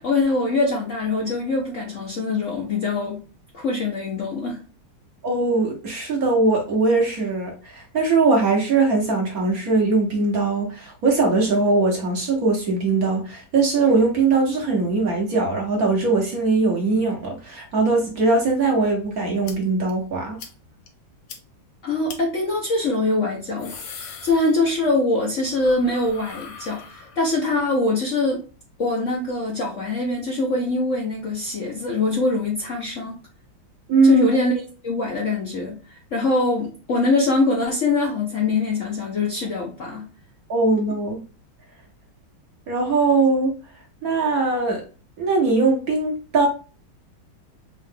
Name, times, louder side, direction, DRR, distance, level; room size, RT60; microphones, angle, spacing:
voice 1, 0.0-3.2 3.5-4.6 21.8-28.4 28.8-33.2 34.1-34.5 34.8-40.1, left 2 dB, 55° left, 0.9 m, -23 dB
voice 2, 5.2-20.4 33.9-34.3 40.5-41.2 42.7-43.5 44.0-44.8 45.2-46.5, right 3 dB, 50° right, 1.3 m, -20 dB
sound 1, 19.5-19.6 19.9-20.0 20.4-20.5 20.9-21.0 21.3-21.4 22.1-22.2 23.3-25.0 25.3-27.4, left 6 dB, 70° left, 1.5 m, -40 dB
4.7 x 2.5 x 3.5 m
omnidirectional pair, 2.2 m